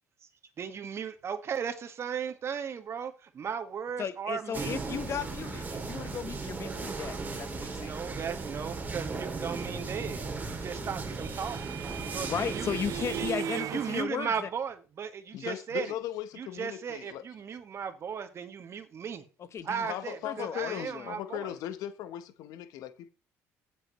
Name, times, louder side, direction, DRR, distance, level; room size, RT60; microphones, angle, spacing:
voice 1, 0.6-4.8 7.6-11.8 12.1-12.8 13.1-15.9 16.4-19.3 19.6-21.5, right 7 dB, 45° right, 1.6 m, -36 dB
voice 2, 4.0-7.9 12.2-14.5 19.4-19.9 20.2-21.1, left 7 dB, 50° left, 1.0 m, -36 dB
sound 1, 4.5-13.3, right 3 dB, 30° right, 2.3 m, -37 dB
sound 2, 10.2-14.0, right 9 dB, 65° right, 0.9 m, -38 dB
voice 3, 15.3-17.2 19.9-23.1, left 12 dB, 75° left, 1.0 m, -38 dB
15.5 x 7.7 x 3.1 m
supercardioid pair, 85°, 6 cm